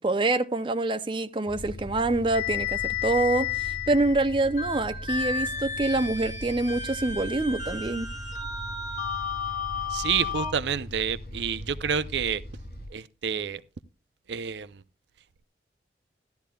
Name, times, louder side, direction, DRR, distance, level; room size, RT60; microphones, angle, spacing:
voice 1, 0.0-8.1, right 2 dB, 30° right, 0.5 m, -26 dB
sound 1, 1.5-12.9, left 1 dB, 55° left, 6.6 m, -40 dB
sound 2, 2.3-10.5, left 6 dB, 40° left, 2.3 m, -32 dB
voice 2, 9.9-12.4 12.9-13.6 14.3-14.7, right 7 dB, 80° right, 0.5 m, -28 dB
14.0 x 11.5 x 2.3 m
head